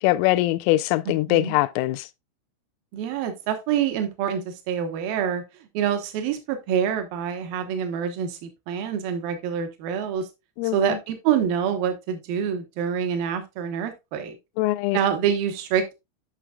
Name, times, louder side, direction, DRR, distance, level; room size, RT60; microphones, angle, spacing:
voice 1, 0.0-2.1 10.6-11.0 14.6-15.0, left 17 dB, 85° left, 3.1 m, -22 dB
voice 2, 2.9-5.4 5.7-10.3 10.7-14.4 14.9-16.0, right 8 dB, 75° right, 2.1 m, -26 dB
10.0 x 5.8 x 2.3 m
omnidirectional pair, 5.7 m